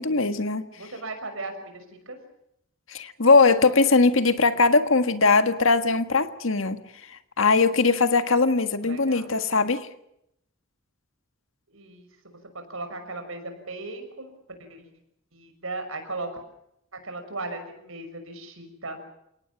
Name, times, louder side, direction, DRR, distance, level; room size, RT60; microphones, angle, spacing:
voice 1, 0.0-0.6 2.9-6.8 7.1-9.9, left 3 dB, 70° left, 9 dB, 1.7 m, -20 dB
voice 2, 0.8-2.2 8.8-9.3 11.7-12.1 12.7-14.3 14.7-14.9 15.3-16.3 17.0-19.0, right 2 dB, 75° right, 7 dB, 6.0 m, -37 dB
29.0 x 18.5 x 7.3 m, 0.77 s
head